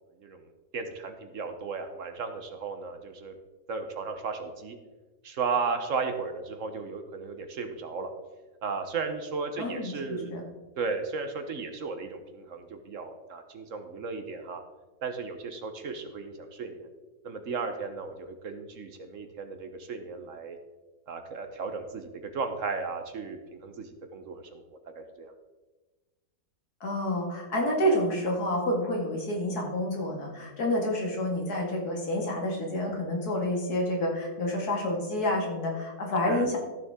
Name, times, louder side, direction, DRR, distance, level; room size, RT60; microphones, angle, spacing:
voice 1, 0.2-3.3 3.7-4.8 5.2-8.1 8.6-10.4 10.8-14.6 15.0-16.9 17.2-20.6 21.1-24.6 25.0-25.3 27.9-28.0 36.3-36.5, right 4 dB, 60° right, 7 dB, 1.2 m, -35 dB
voice 2, 9.6-10.4 26.8-36.6, left 1 dB, 80° left, 0 dB, 2.6 m, -29 dB
14.5 x 6.8 x 3.6 m, 1.2 s
omnidirectional pair, 1.6 m